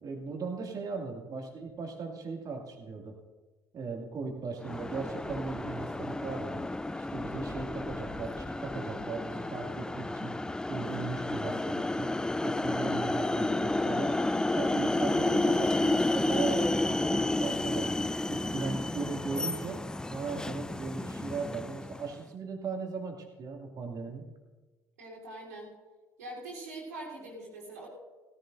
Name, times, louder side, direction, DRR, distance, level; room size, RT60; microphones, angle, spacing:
voice 1, 0.0-3.1 3.7-6.6 7.0-10.3 10.7-12.1 12.4-14.1 14.5-17.9 18.3-19.8 20.1-24.2, right 4 dB, 45° right, 1 dB, 2.3 m, -38 dB
sound 1, 4.6-22.1, left 2 dB, 10° left, 0.4 m, -31 dB
voice 2, 25.0-25.7 26.2-27.9, right 2 dB, 80° right, -5 dB, 3.5 m, -43 dB
17.0 x 15.0 x 2.6 m, 1.3 s
figure-of-eight pair, 55°, 9 cm